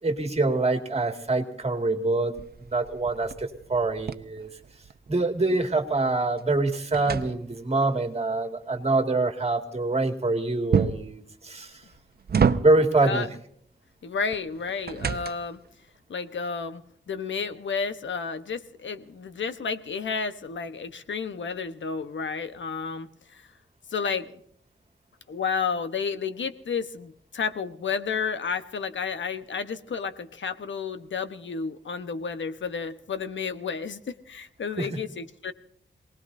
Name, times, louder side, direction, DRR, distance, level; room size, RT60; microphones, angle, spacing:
voice 1, 0.0-4.5 5.1-11.8 12.6-13.3 34.8-34.9, right 2 dB, 35° right, 5 dB, 2.1 m, -25 dB
sound 1, 2.3-5.2 5.6-7.9 10.7-11.2 11.8-13.0 14.3-15.7, right 6 dB, 55° right, 0.8 m, -29 dB
voice 2, 14.0-15.6 16.1-16.8 17.1-23.5 23.9-24.3 25.3-35.5, left 5 dB, 85° left, 10 dB, 1.1 m, -31 dB
27.0 x 19.0 x 2.7 m, 0.66 s
wide cardioid pair, 105°, 19 cm